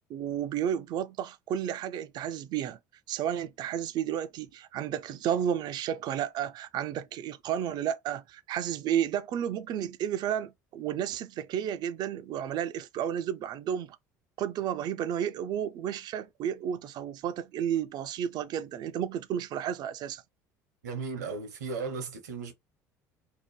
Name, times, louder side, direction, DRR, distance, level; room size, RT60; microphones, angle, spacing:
voice 1, 0.1-2.8 3.1-14.0 14.4-20.2, right 9 dB, 50° right, 0.4 m, -32 dB
voice 2, 20.8-22.5, right 4 dB, 80° right, 0.8 m, -35 dB
2.7 x 2.1 x 3.1 m
hypercardioid pair, 65°, 9 cm